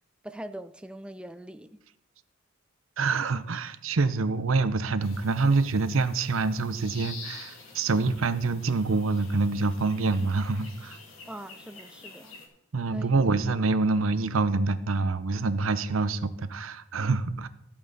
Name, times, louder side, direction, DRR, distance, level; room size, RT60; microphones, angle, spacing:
voice 1, 0.2-1.8 11.3-12.4 12.9-13.1, right 1 dB, 5° right, 0.4 m, -42 dB
voice 2, 3.0-11.0 12.7-17.5, right 3 dB, 85° right, 0.7 m, -26 dB
sound 1, 5.0-12.5, left 4 dB, 85° left, 2.4 m, -47 dB
13.5 x 8.7 x 4.0 m
head